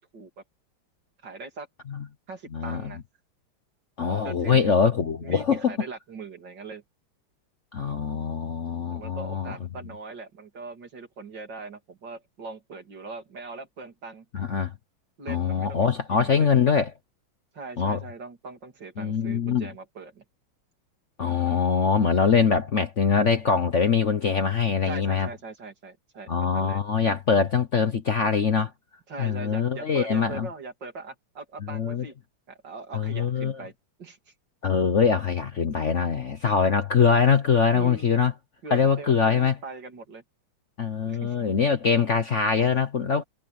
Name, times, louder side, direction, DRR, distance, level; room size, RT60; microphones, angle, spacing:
voice 1, 1.2-1.7 2.3-3.0 4.2-4.8 5.2-6.8 8.9-14.3 15.2-16.5 17.5-20.2 24.8-26.8 29.1-32.1 32.5-33.7 34.0-34.2 37.7-38.2 38.6-40.2 41.0-41.4, right 4 dB, 60° right, 3.6 m, -40 dB
voice 2, 2.5-2.9 4.0-5.7 7.7-9.5 14.3-14.7 15.3-16.9 17.8-18.0 19.0-19.7 21.2-25.3 26.3-28.7 29.2-30.5 31.6-32.0 32.9-33.5 34.6-38.3 38.7-39.5 40.8-43.2, left 6 dB, 45° left, 1.1 m, -23 dB
omnidirectional pair, 2.2 m